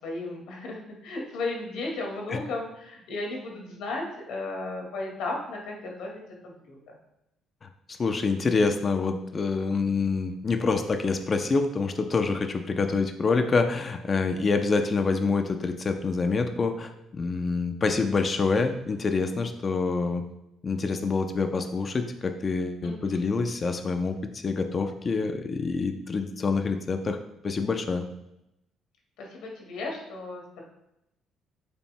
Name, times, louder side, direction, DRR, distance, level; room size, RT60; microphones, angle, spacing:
voice 1, 0.0-6.8 22.8-22.9 29.2-30.6, left 2 dB, 85° left, 0 dB, 2.0 m, -35 dB
voice 2, 7.6-20.2 20.6-27.2 27.4-28.0, left 4 dB, 30° left, 7 dB, 0.6 m, -26 dB
8.7 x 7.2 x 2.2 m, 0.86 s
cardioid pair, 145°, 0 cm